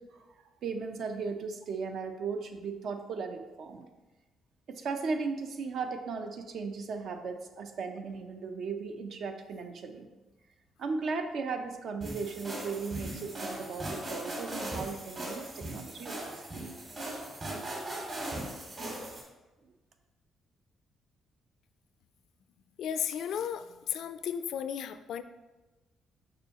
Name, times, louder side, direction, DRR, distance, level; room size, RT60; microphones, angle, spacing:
voice 1, 0.6-3.8 4.7-10.1 10.8-16.3, right 4 dB, 65° right, 6 dB, 0.7 m, -36 dB
sound 1, 12.0-19.2, right 1 dB, 45° right, 2.2 m, -39 dB
voice 2, 22.8-25.2, left 8 dB, 75° left, 11 dB, 0.4 m, -34 dB
6.7 x 5.6 x 2.9 m, 1.1 s
cardioid pair, 90°, 0 cm